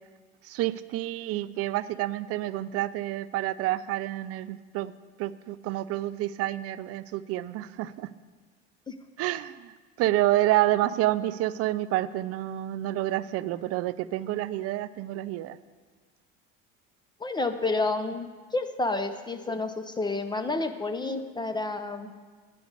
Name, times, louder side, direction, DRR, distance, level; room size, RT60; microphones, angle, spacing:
voice 1, 0.4-4.9 5.2-8.1 9.2-9.7 10.0-15.6, right 15 dB, 55° right, 15 dB, 0.5 m, -28 dB
voice 2, 17.2-22.1, left 3 dB, 15° left, 8 dB, 0.6 m, -30 dB
9.4 x 5.2 x 8.1 m, 1.5 s
supercardioid pair, 90°, 29 cm